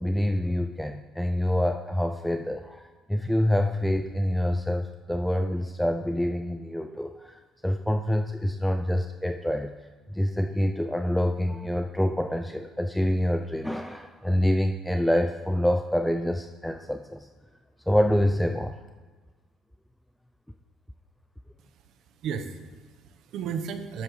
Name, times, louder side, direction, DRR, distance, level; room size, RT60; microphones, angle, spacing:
voice 1, 0.0-9.7 10.1-17.3 17.9-18.8, left 1 dB, 5° left, 6 dB, 0.3 m, -26 dB
voice 2, 21.6-24.0, right 7 dB, 65° right, 8 dB, 0.8 m, -35 dB
11.0 x 8.1 x 3.1 m, 1.4 s
cardioid pair, 110°, 0 cm